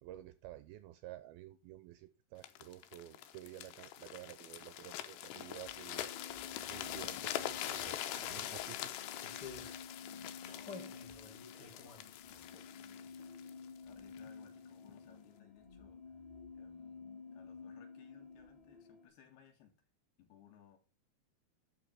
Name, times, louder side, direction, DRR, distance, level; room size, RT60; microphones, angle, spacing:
voice 1, 0.0-6.1 6.7-8.9, right 14 dB, 80° right, 2.3 m, -51 dB
sound 1, 2.4-14.3 14.9-15.1, left 12 dB, 90° left, 3.0 m, -44 dB
sound 2, 5.3-19.1, left 5 dB, 30° left, 0.6 m, -52 dB
sound 3, 7.9-8.0 8.7-9.8 10.5-12.6 13.0-13.5 13.8-13.9, left 4 dB, 50° left, 1.3 m, -52 dB
voice 2, 10.0-13.2 13.8-16.2 16.5-19.8 20.2-20.8, left 9 dB, 70° left, 3.5 m, -63 dB
12.0 x 4.7 x 5.7 m
omnidirectional pair, 4.9 m